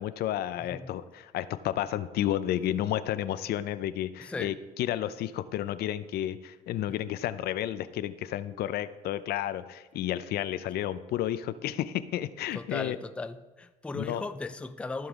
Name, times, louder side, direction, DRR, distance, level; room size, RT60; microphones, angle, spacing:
voice 1, 0.0-13.0 13.9-14.2, left 12 dB, 70° left, 0.5 m, -31 dB
voice 2, 4.2-4.6 12.5-15.1, left 3 dB, 5° left, 0.4 m, -37 dB
15.0 x 5.4 x 3.6 m
cardioid pair, 110°, 17 cm